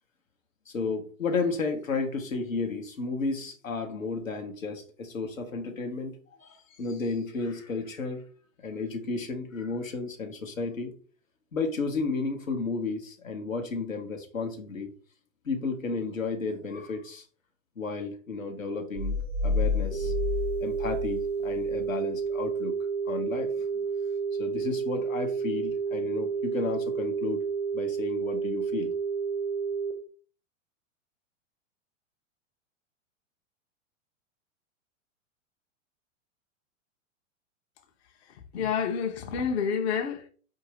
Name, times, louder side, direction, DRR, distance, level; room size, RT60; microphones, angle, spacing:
voice 1, 0.7-8.2 8.6-10.9 11.5-14.9 15.4-17.2 17.8-20.1 20.6-22.8 23.1-23.5 24.4-27.4 27.7-28.9, left 4 dB, 85° left, 0.9 m, -33 dB
sound 1, 19.0-21.8, left 3 dB, 15° right, 0.4 m, -30 dB
sound 2, 19.9-29.9, right 6 dB, 75° right, 1.0 m, -30 dB
voice 2, 38.5-40.3, left 6 dB, 55° left, 0.8 m, -28 dB
4.7 x 2.8 x 2.8 m
figure-of-eight pair, 100°, 39 cm